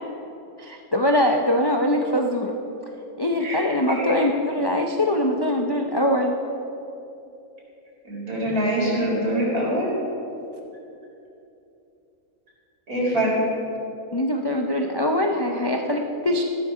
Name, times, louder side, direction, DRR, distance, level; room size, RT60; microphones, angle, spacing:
voice 1, 0.6-2.6 3.2-6.3 14.1-16.4, left 1 dB, 30° left, 2 dB, 0.5 m, -22 dB
voice 2, 3.4-4.3 8.0-9.9 12.9-13.3, equal, 85° right, -5 dB, 4.6 m, -24 dB
14.0 x 12.5 x 4.9 m, 2.9 s
omnidirectional pair, 1.6 m